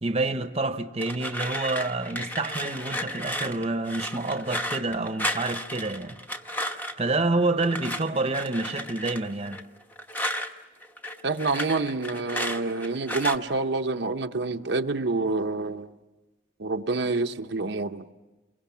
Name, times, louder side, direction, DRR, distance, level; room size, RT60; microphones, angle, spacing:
voice 1, 0.0-6.2 6.6-9.6, right 2 dB, 30° right, 0.9 m, -28 dB
sound 1, 1.0-7.1 7.6-10.5 10.8-13.4, equal, 10° left, 1.0 m, -33 dB
voice 2, 11.2-15.9 16.6-18.1, right 3 dB, 60° right, 0.8 m, -27 dB
29.0 x 23.0 x 7.3 m
head